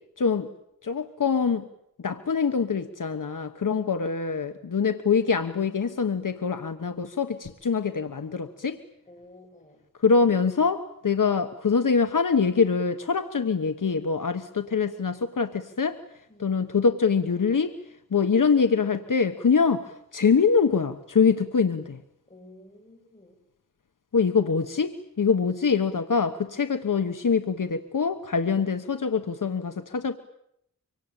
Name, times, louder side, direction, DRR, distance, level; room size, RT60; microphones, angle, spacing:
voice 1, 0.2-0.5 0.8-1.6 2.0-8.8 10.0-16.0 16.4-17.7 18.1-22.0 24.1-30.2, left 5 dB, 70° left, 8 dB, 1.2 m, -24 dB
voice 2, 9.1-9.8 16.3-16.6 22.3-23.4, left 1 dB, 25° left, 3 dB, 7.7 m, -52 dB
25.5 x 24.5 x 8.9 m, 0.77 s
wide cardioid pair, 80°, 33 cm